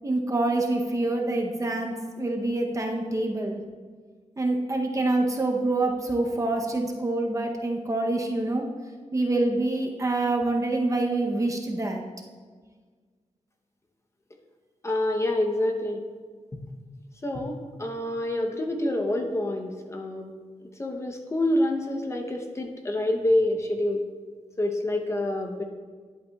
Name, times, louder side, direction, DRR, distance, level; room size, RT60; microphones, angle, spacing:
voice 1, 0.0-3.6 4.4-8.7 9.1-12.0, right 2 dB, 25° right, 1 dB, 0.7 m, -26 dB
voice 2, 14.8-16.0 17.2-20.3 20.7-24.0 24.6-25.6, left 1 dB, 25° left, 3 dB, 0.8 m, -27 dB
10.5 x 8.2 x 2.3 m, 1.5 s
wide cardioid pair, 125°, 12 cm